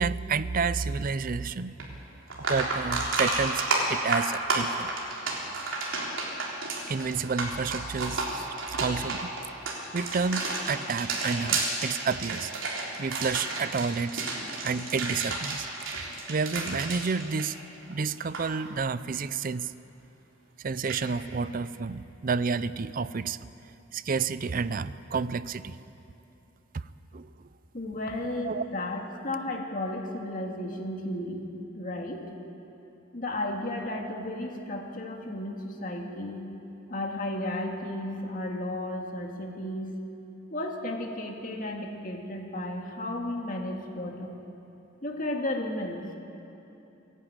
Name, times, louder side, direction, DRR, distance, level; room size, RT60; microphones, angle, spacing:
voice 1, 0.0-1.7 2.5-4.9 6.9-9.3 9.9-12.5 13.0-14.2 14.6-15.7 15.9-17.6 17.9-19.7 20.6-23.4 23.9-25.8 26.7-26.8 27.1-27.3 28.4-28.6, right 5 dB, 45° right, 16 dB, 0.5 m, -30 dB
sound 1, 1.8-1.9 2.3-17.9 18.2-18.4 20.9-21.0, right 3 dB, 70° right, 3.6 m, -31 dB
voice 2, 27.7-31.4 31.7-32.3 33.1-36.4 36.9-39.9 40.5-44.3 45.0-46.0, left 1 dB, 40° left, 1 dB, 2.1 m, -33 dB
27.5 x 11.0 x 8.9 m, 2.9 s
head